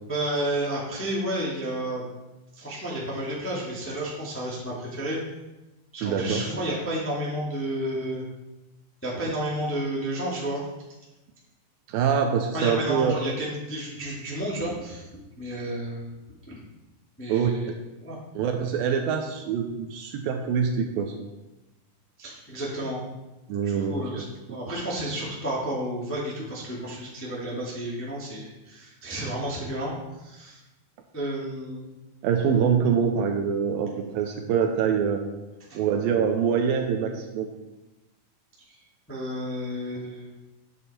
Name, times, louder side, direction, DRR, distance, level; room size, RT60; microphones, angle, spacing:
voice 1, 0.0-2.0 2.5-5.2 5.9-8.2 9.0-10.6 12.5-15.1 15.4-16.1 16.5-16.6 17.2-17.7 18.0-18.2 22.2-23.0 23.6-29.9 30.2-30.6 31.1-31.9 35.7-35.8 38.7-38.8 39.1-40.4, right 1 dB, 5° left, -6 dB, 0.9 m, -31 dB
voice 2, 6.0-6.4 11.9-13.1 17.3-17.8 18.4-21.2 23.5-24.2 24.5-24.6 32.2-35.2 35.7-37.5, right 7 dB, 80° right, 4 dB, 2.3 m, -25 dB
9.0 x 8.5 x 4.3 m, 1.0 s
omnidirectional pair, 4.5 m